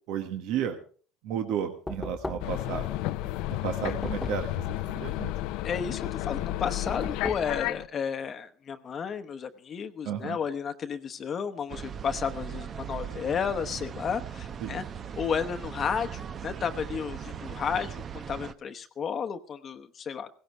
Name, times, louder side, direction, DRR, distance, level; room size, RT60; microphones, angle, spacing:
voice 1, 0.1-0.8 1.2-3.0 3.5-5.3 10.0-10.4 14.6-14.8, right 8 dB, 70° right, 6 dB, 1.4 m, -33 dB
Knock, 1.9-2.7 3.9-4.6 6.9-7.6, left 2 dB, 10° left, 0.6 m, -37 dB
sound 1, 2.4-7.9, left 15 dB, 75° left, 0.6 m, -32 dB
voice 2, 5.6-14.8 15.2-20.3, left 7 dB, 40° left, 8 dB, 0.9 m, -32 dB
sound 2, 11.7-18.5, right 8 dB, 40° right, 0.8 m, -39 dB
17.0 x 16.0 x 3.4 m, 0.42 s
supercardioid pair, 105°, 0 cm